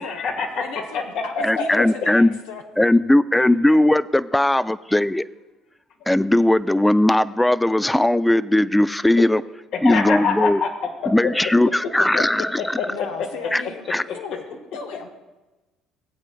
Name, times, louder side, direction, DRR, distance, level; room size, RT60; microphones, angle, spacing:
voice 1, 0.0-1.9 9.2-9.3 9.7-11.3 12.1-13.1, left 5 dB, 65° left, 3 dB, 1.4 m, -26 dB
voice 2, 0.6-2.6 3.4-3.8 12.9-15.1, left 5 dB, 80° left, 3 dB, 0.8 m, -36 dB
voice 3, 1.4-2.4 2.8-5.2 6.1-9.4 9.8-10.6 11.1-12.8 13.5-13.6 13.9-14.0, left 1 dB, 10° left, 16 dB, 0.3 m, -18 dB
16.5 x 8.1 x 2.3 m, 1.1 s
hypercardioid pair, 65°, 0 cm